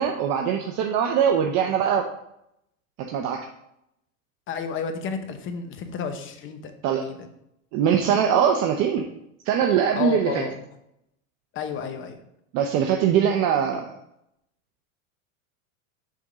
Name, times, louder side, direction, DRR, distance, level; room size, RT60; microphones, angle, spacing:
voice 1, 0.0-2.1 3.1-3.4 6.8-7.0 7.7-9.0 9.4-10.4 12.5-13.9, right 8 dB, 40° right, 3 dB, 0.6 m, -22 dB
voice 2, 4.5-7.3 10.0-10.6 11.5-12.2, left 6 dB, 30° left, 7 dB, 0.8 m, -32 dB
6.9 x 3.6 x 5.0 m, 0.80 s
supercardioid pair, 130°, 41 cm